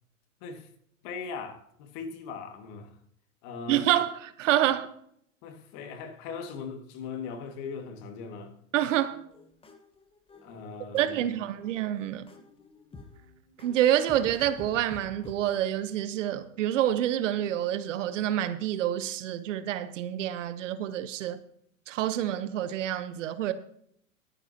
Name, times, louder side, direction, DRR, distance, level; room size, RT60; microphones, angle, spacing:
voice 1, 1.0-2.9 3.4-3.9 5.4-8.5 10.4-11.3, left 5 dB, 45° left, 2.1 m, -39 dB
voice 2, 3.7-4.9 8.7-9.2 10.9-12.3 13.6-21.4 21.9-23.5, right 12 dB, 60° right, 1.1 m, -27 dB
sound 1, 9.0-15.4, left 3 dB, 15° left, 1.4 m, -50 dB
20.5 x 9.8 x 2.9 m
hypercardioid pair, 105°, 42 cm